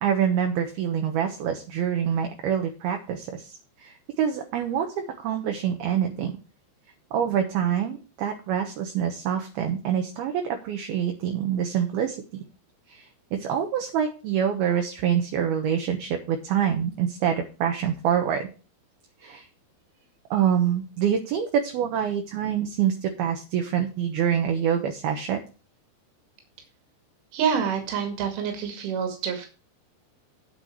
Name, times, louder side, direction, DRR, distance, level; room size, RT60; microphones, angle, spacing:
voice 1, 0.0-3.5 3.8-6.3 7.1-12.2 12.9-18.5 19.2-19.5 20.3-25.4, right 8 dB, 70° right, 4 dB, 2.6 m, -26 dB
voice 2, 27.3-29.5, right 7 dB, 90° right, 4 dB, 4.7 m, -27 dB
9.7 x 8.3 x 4.7 m, 0.34 s
omnidirectional pair, 5.4 m